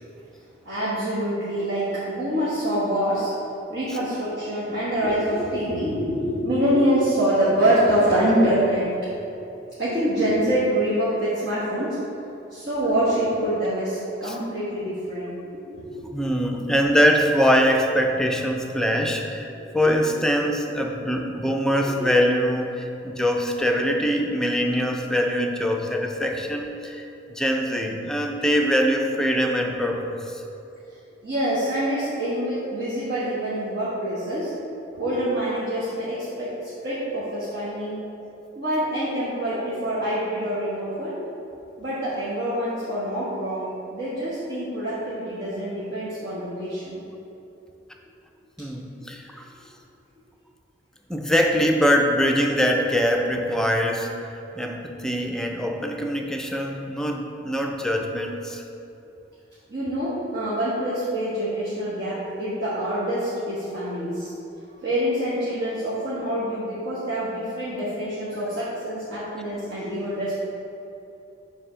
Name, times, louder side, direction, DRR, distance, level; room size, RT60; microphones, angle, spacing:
voice 1, 0.6-3.3 3.7-9.1 9.8-12.0 12.5-16.1 19.6-20.0 31.2-34.5 34.9-38.0 38.5-41.2 41.8-47.0 59.7-64.3 64.8-70.3, right 1 dB, 60° right, -11 dB, 1.4 m, -25 dB
voice 2, 16.1-30.4 48.6-49.5 51.1-54.1 54.5-58.6, equal, 5° left, 1 dB, 0.4 m, -23 dB
7.3 x 3.4 x 5.5 m, 2.9 s
head